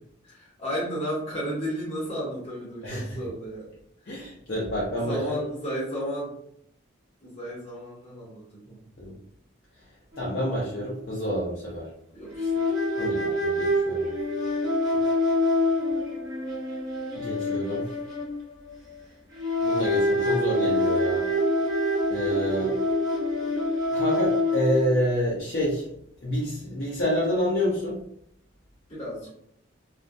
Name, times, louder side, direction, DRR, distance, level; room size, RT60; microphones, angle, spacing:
voice 1, 0.2-3.7 4.1-4.2 5.0-6.3 7.2-9.1 12.1-12.7 12.9-13.2 28.9-29.3, equal, 30° left, -6 dB, 1.0 m, -33 dB
voice 2, 4.1-5.4 9.0-9.2 10.2-11.9 13.0-14.1 17.1-17.9 19.6-21.2 22.1-22.7 23.9-25.9 26.2-28.0, equal, 50° left, -7 dB, 0.6 m, -28 dB
sound 1, 10.1-10.3 10.6-10.8 12.3-18.9 19.3-25.0, left 1 dB, 20° right, 0.6 m, -26 dB
2.3 x 2.1 x 2.6 m, 0.70 s
head